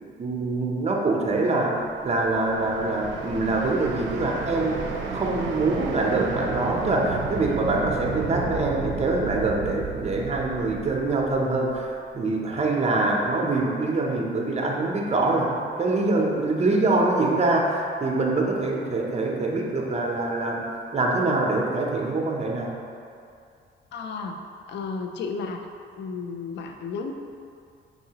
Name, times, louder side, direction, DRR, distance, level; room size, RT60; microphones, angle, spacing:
voice 1, 0.2-4.8 5.1-20.6 20.9-22.7, right 2 dB, 35° right, -1 dB, 0.7 m, -24 dB
sound 1, 1.9-11.8, right 4 dB, 75° right, 0.5 m, -33 dB
voice 2, 23.9-24.4 24.7-25.7 26.0-27.1, left 4 dB, 65° left, 4 dB, 0.4 m, -33 dB
5.5 x 2.7 x 2.8 m, 2.4 s
cardioid pair, 90°, 20 cm